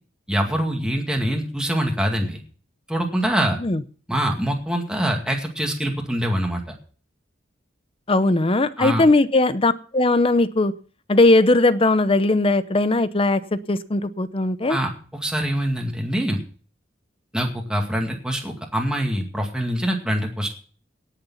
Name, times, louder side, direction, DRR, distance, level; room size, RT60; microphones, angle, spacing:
voice 1, 0.3-2.4 2.9-3.6 4.1-6.6 8.8-9.0 14.7-14.9 15.2-16.4 17.3-20.5, equal, 5° right, 1 dB, 2.2 m, -24 dB
voice 2, 8.1-10.7 11.1-14.8, left 2 dB, 30° left, 14 dB, 0.7 m, -19 dB
18.0 x 7.1 x 5.6 m, 0.41 s
head